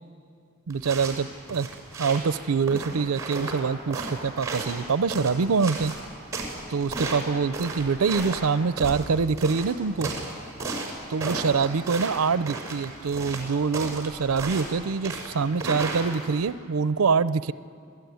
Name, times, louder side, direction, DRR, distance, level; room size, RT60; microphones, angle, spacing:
sound 1, 0.7-16.5, right 3 dB, 15° right, 5.7 m, -34 dB
voice 1, 0.7-1.7 2.0-5.9 6.7-10.1 11.1-17.5, right 5 dB, 90° right, 15 dB, 0.5 m, -25 dB
27.0 x 17.5 x 9.4 m, 2.4 s
head